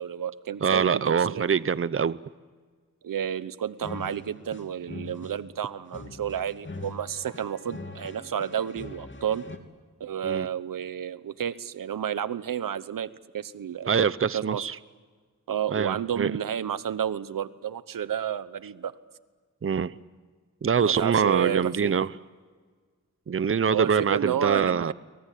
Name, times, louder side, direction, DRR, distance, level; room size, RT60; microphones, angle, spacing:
voice 1, 0.0-1.5 3.0-9.4 10.0-13.9 14.3-14.6 15.5-18.9 20.8-21.9 23.7-24.9, right 9 dB, 85° right, 15 dB, 1.0 m, -31 dB
voice 2, 0.6-2.2 10.2-10.5 13.9-14.8 15.7-16.3 19.6-19.9 20.6-22.1 23.3-24.9, right 6 dB, 40° right, 17 dB, 0.8 m, -24 dB
sound 1, 3.8-9.6, left 3 dB, 35° left, 2.7 m, -42 dB
29.0 x 23.5 x 8.4 m, 1.5 s
cardioid pair, 60°, 32 cm